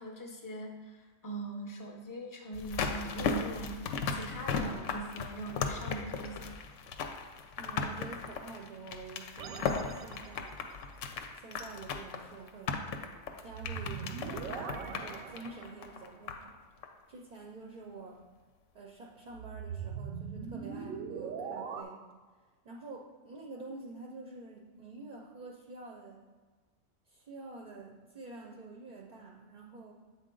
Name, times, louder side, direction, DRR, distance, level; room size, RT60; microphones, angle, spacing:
voice 1, 0.0-6.6, right 1 dB, 25° left, 1 dB, 0.5 m, -42 dB
sound 1, 2.5-16.6 16.8-16.9, left 5 dB, 70° left, 0.9 m, -37 dB
voice 2, 7.6-10.6 11.3-13.1 13.4-16.6 17.1-18.2 18.7-22.1 22.6-26.2 27.1-29.9, right 3 dB, 50° right, -1 dB, 0.5 m, -48 dB
sound 2, 9.4-10.7 13.4-16.1 19.3-21.8, right 6 dB, 85° right, 1.0 m, -41 dB
7.6 x 4.1 x 3.7 m, 1.3 s
omnidirectional pair, 1.4 m